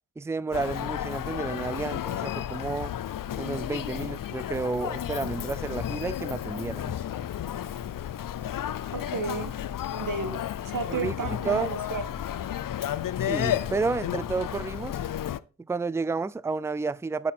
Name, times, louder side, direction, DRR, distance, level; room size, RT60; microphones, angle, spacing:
voice 1, 0.2-2.9 3.4-6.9 10.9-11.7 13.3-15.0 15.6-17.3, right 4 dB, 10° right, 0.4 m, -31 dB
Human voice, 0.5-15.4, left 11 dB, 70° left, 0.6 m, -32 dB
voice 2, 8.9-9.5 9.9-12.0, right 4 dB, 65° right, 1.8 m, -32 dB
7.2 x 6.6 x 3.8 m
cardioid pair, 45°, 34 cm